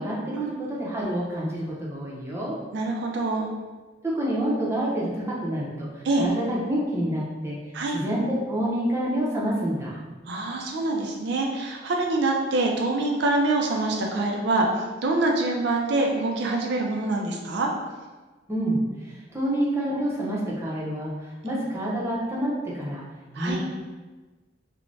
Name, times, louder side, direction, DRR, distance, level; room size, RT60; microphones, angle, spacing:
voice 1, 0.0-2.6 4.1-7.6 7.9-10.0 18.5-21.1 21.4-23.0 23.4-23.8, right 1 dB, 15° right, -6 dB, 0.6 m, -28 dB
voice 2, 2.7-3.5 6.0-6.3 7.7-8.0 10.3-14.7 15.0-17.7 23.3-23.6, right 2 dB, 65° right, 0 dB, 0.4 m, -25 dB
2.5 x 2.1 x 3.1 m, 1.3 s
head